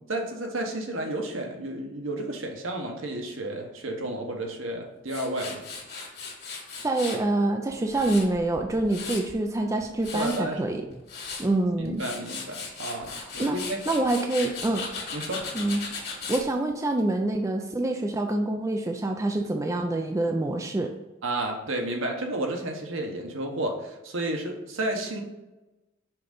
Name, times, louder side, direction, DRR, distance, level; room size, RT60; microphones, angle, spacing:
voice 1, 0.1-5.6 10.1-10.8 11.8-13.8 15.1-15.4 21.2-25.2, right 1 dB, 65° right, 2 dB, 1.1 m, -32 dB
Tools, 5.1-7.2 7.7-9.4 9.8-10.4 10.9-11.5 11.8-16.4, left 4 dB, 50° left, 1.8 m, -37 dB
voice 2, 6.8-10.8 11.4-12.0 13.1-13.6 13.9-14.9 15.5-15.8 16.3-20.9, right 2 dB, 15° right, 4 dB, 0.4 m, -26 dB
5.8 x 3.8 x 5.3 m, 1.0 s
head